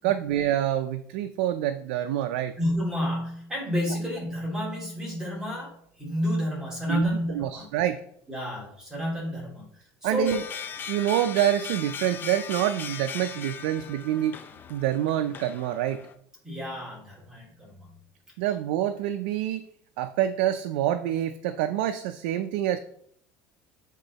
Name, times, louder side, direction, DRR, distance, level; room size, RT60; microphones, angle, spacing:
voice 1, 0.0-2.5 6.9-8.0 10.0-10.4 10.9-14.4 14.7-16.0 18.4-19.7 20.0-22.8, right 12 dB, 85° right, 8 dB, 0.4 m, -26 dB
voice 2, 2.6-7.7 8.3-10.4 16.4-17.9, equal, 10° right, -4 dB, 2.6 m, -30 dB
sound 1, 10.3-16.1, left 7 dB, 35° left, 0.6 m, -38 dB
7.3 x 3.7 x 4.1 m, 0.65 s
supercardioid pair, 125°, 6 cm